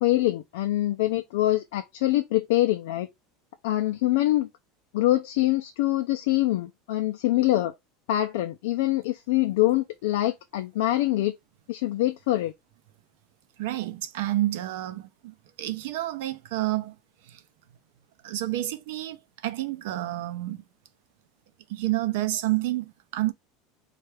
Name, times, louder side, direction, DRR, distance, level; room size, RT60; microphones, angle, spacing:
voice 1, 0.0-3.1 3.6-4.5 4.9-7.7 8.1-11.4 11.7-12.5, left 15 dB, 75° left, 0.4 m, -24 dB
voice 2, 13.6-17.0 17.2-17.4 18.2-20.6 21.7-23.3, right 16 dB, 70° right, 0.5 m, -29 dB
4.4 x 2.4 x 3.3 m
supercardioid pair, 175°, 0 cm